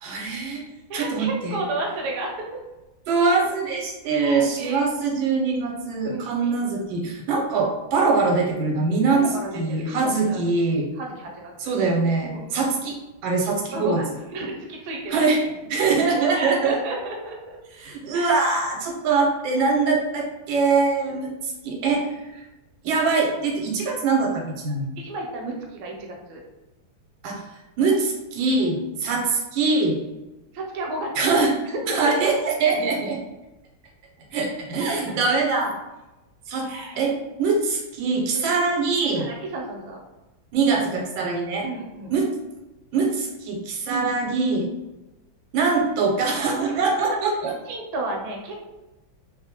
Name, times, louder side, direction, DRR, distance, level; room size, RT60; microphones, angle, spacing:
voice 1, 0.0-0.6 0.9-1.6 3.1-9.2 9.5-10.9 11.6-13.0 13.2-14.0 15.1-15.4 15.6-16.7 17.8-22.4 22.8-25.0 27.2-27.4 27.8-30.0 31.2-31.5 31.9-33.2 34.3-35.7 36.5-36.7 37.0-39.3 40.5-41.7 42.1-42.3 42.9-44.7 45.5-47.5, right 4 dB, 85° right, -1 dB, 1.4 m, -23 dB
voice 2, 0.9-2.6 4.1-4.9 6.1-6.5 9.1-10.4 11.0-11.5 12.2-12.5 13.7-14.1 14.3-15.2 15.7-17.6 18.1-18.3 25.0-26.4 28.8-28.9 30.5-31.1 31.7-31.8 32.2-32.3 34.8-35.2 36.6-37.0 39.2-40.0 41.6-42.1 43.9-44.1 46.7-47.2 47.7-48.7, right 2 dB, 70° right, 0 dB, 1.1 m, -32 dB
3.1 x 2.1 x 2.8 m, 1.0 s
omnidirectional pair, 2.1 m